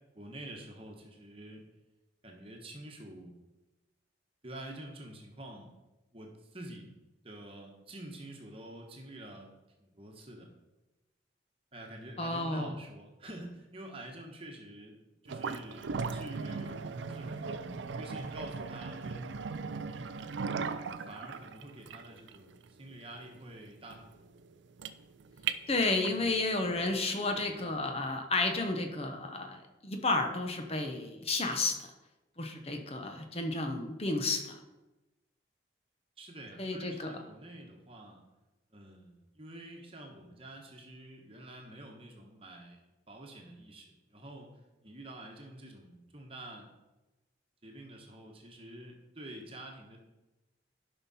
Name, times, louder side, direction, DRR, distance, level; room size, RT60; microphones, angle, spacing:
voice 1, 0.1-1.6 2.2-3.3 4.4-5.7 6.1-6.9 7.2-9.5 9.8-10.5 11.7-15.0 15.2-19.4 20.5-24.3 36.2-38.2 38.7-44.5 44.8-46.7 47.6-50.0, right 1 dB, 30° right, 1 dB, 1.2 m, -48 dB
voice 2, 12.2-12.7 25.7-31.9 32.4-34.6 36.6-37.2, left 2 dB, 35° left, 4 dB, 0.9 m, -32 dB
sound 1, 15.3-26.3, right 5 dB, 75° right, 0.5 m, -38 dB
11.0 x 5.7 x 4.2 m, 1.1 s
head